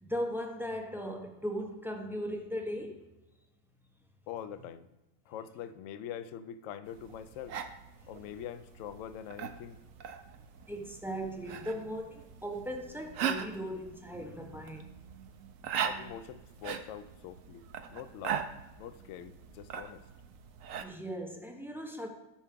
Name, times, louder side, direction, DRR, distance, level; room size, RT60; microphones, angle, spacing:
voice 1, 0.0-3.1 10.7-14.8 20.8-22.1, equal, 5° right, 0.4 m, -38 dB
voice 2, 4.3-4.9 5.3-7.6 8.1-9.8 15.8-18.5 18.8-20.0, left 9 dB, 70° left, 0.7 m, -44 dB
sound 1, 6.9-20.8, right 8 dB, 65° right, 0.9 m, -40 dB
13.5 x 5.7 x 3.6 m
omnidirectional pair, 1.7 m